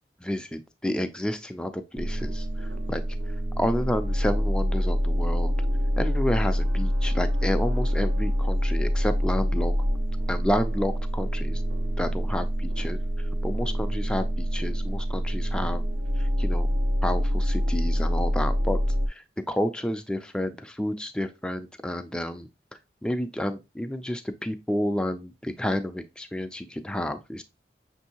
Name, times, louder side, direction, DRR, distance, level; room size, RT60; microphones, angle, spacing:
voice 1, 0.2-3.0 3.6-5.5 6.0-9.7 10.3-11.6 12.0-13.0 13.4-15.8 16.4-16.7 17.0-18.8 19.1-22.5 23.0-27.4, left 1 dB, 5° left, 7 dB, 0.3 m, -30 dB
sound 1, 2.0-19.1, equal, 85° right, 0.5 m, -26 dB
6.2 x 2.6 x 2.8 m, 0.25 s
head